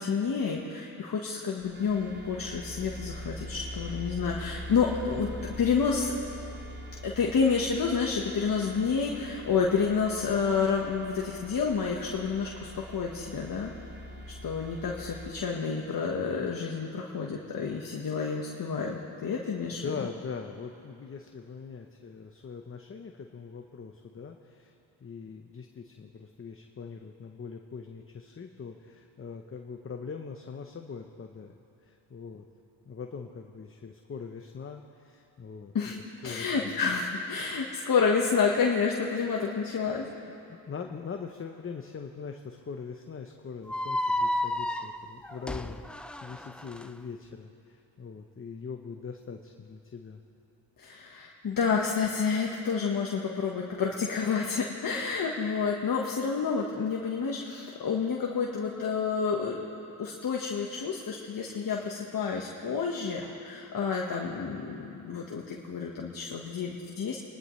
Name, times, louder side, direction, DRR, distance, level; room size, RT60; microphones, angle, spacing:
voice 1, 0.0-5.3 5.6-6.1 7.0-13.7 14.4-19.9 35.7-35.9 36.2-40.0 50.8-59.6 60.0-67.2, left 5 dB, 45° left, -1 dB, 1.4 m, -29 dB
sound 1, 1.6-15.3, equal, 25° right, 1.7 m, -43 dB
voice 2, 19.8-24.7 25.0-32.5 32.9-36.8 40.5-50.2, left 5 dB, 30° left, 4 dB, 0.8 m, -42 dB
sound 2, 43.7-46.9, left 1 dB, ahead, 0.4 m, -32 dB
28.5 x 11.5 x 3.2 m, 2.8 s
cardioid pair, 75°, 46 cm